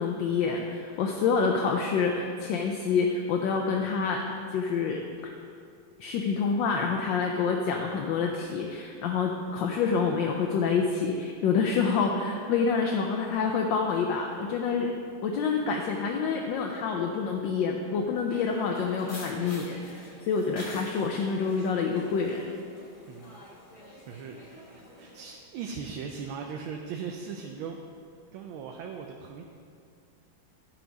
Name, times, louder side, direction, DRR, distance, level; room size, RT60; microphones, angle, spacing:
voice 1, 0.0-4.2 4.5-5.3 6.0-14.9 15.2-22.4, left 5 dB, 75° left, 1 dB, 1.3 m, -27 dB
sound 1, 18.3-25.3, left 1 dB, 40° left, 0.4 m, -47 dB
voice 2, 23.1-23.5 24.1-27.8 28.3-29.4, right 6 dB, 85° right, 3 dB, 1.4 m, -39 dB
12.0 x 4.5 x 5.2 m, 2.3 s
omnidirectional pair, 2.2 m